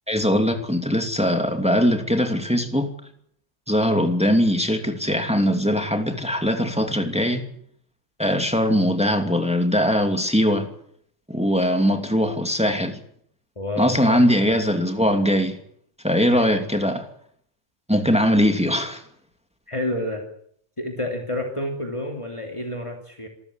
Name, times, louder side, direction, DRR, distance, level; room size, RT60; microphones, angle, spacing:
voice 1, 0.1-2.9 3.7-7.5 8.2-10.7 11.3-13.0 13.8-15.6 16.0-17.1 17.9-19.0, equal, 5° right, 2.7 m, -21 dB
voice 2, 13.6-14.6 16.3-16.5 19.7-20.2 20.8-23.3, left 1 dB, 25° left, 3.2 m, -29 dB
27.0 x 14.0 x 10.0 m
omnidirectional pair, 1.2 m